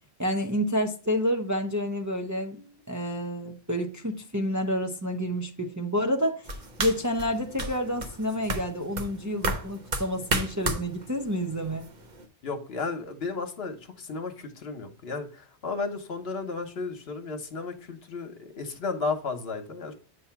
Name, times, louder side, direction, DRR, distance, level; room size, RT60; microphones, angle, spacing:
voice 1, 0.2-6.5 6.8-11.8, equal, 20° right, 0.5 m, -29 dB
sound 1, 6.4-12.3, right 2 dB, 45° right, 1.1 m, -34 dB
voice 2, 12.4-19.9, left 4 dB, 65° left, 1.3 m, -34 dB
8.4 x 2.8 x 5.7 m
omnidirectional pair, 1.1 m